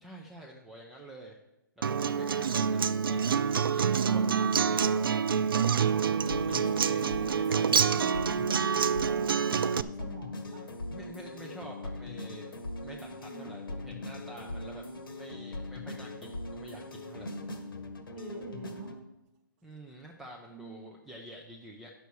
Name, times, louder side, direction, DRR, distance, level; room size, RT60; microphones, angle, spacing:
voice 1, 0.0-1.4 1.8-7.8 10.9-12.5 12.8-14.8 15.1-17.4 19.6-21.9, right 1 dB, ahead, -1 dB, 0.4 m, -48 dB
Acoustic guitar, 1.8-9.8, right 6 dB, 85° right, 0.5 m, -27 dB
sound 1, 6.1-19.0, left 2 dB, 80° left, 1.6 m, -40 dB
voice 2, 7.8-10.7 13.3-14.0 18.1-18.9 20.5-20.9, right 2 dB, 20° right, 0 dB, 1.2 m, -48 dB
10.5 x 6.8 x 4.7 m, 0.91 s
hypercardioid pair, 165°, 12 cm